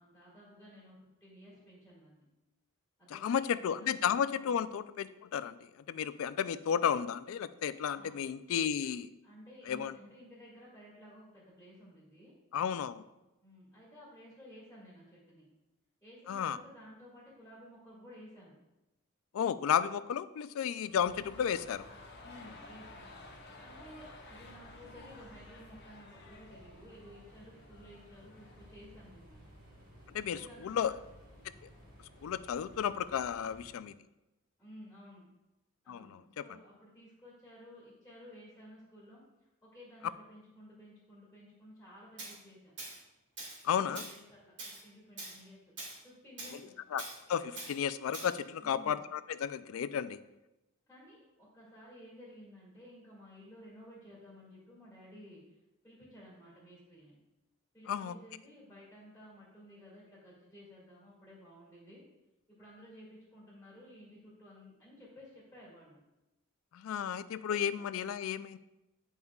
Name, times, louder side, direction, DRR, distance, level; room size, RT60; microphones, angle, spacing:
voice 1, 0.0-2.3 3.0-3.9 4.3-4.5 7.9-8.2 9.2-12.3 13.4-15.5 16.0-18.5 22.2-23.1 23.6-29.5 30.3-31.0 34.6-35.2 35.8-39.2 39.6-42.7 43.8-45.6 46.0-46.7 48.6-49.0 50.9-55.4 55.8-57.2 57.7-62.0 62.5-66.0 67.5-67.9, equal, 5° left, -7 dB, 2.0 m, -54 dB
voice 2, 3.1-5.6 5.9-9.1 9.7-9.9 12.5-13.0 16.3-16.6 19.3-21.8 30.1-30.4 30.6-30.9 32.2-33.9 35.9-36.4 43.6-44.0 46.9-47.0 47.3-50.2 57.9-58.1 66.7-68.6, left 8 dB, 70° left, 14 dB, 0.3 m, -33 dB
sound 1, 20.7-28.8 29.1-29.2, left 3 dB, 50° left, 0.9 m, -54 dB
sound 2, 20.9-33.7, equal, 75° right, 2.0 m, -57 dB
Tools, 42.2-42.3 42.8-43.0 43.4-43.6 43.9-44.2 44.6-44.8 45.2-45.4 45.8-46.0 46.4-46.6 47.0-47.2 47.6-47.7 48.1-48.3, right 2 dB, 55° right, 1.9 m, -43 dB
9.2 x 5.5 x 2.3 m, 0.98 s
head